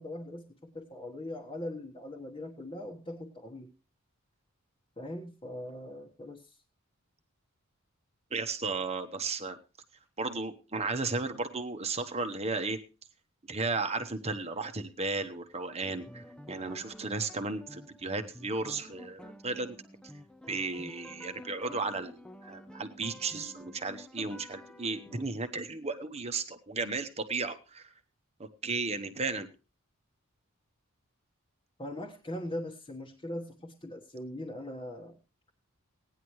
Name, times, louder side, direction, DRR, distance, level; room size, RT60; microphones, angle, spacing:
voice 1, 0.0-3.7 5.0-6.6 31.8-35.2, left 1 dB, 25° left, -1 dB, 1.3 m, -40 dB
voice 2, 8.3-9.6 10.2-12.8 13.5-19.8 20.5-27.9 28.4-29.5, right 3 dB, 30° right, 9 dB, 1.1 m, -34 dB
sound 1, 15.8-25.2, left 1 dB, 5° left, 0.6 m, -50 dB
17.5 x 10.0 x 3.1 m, 0.31 s
head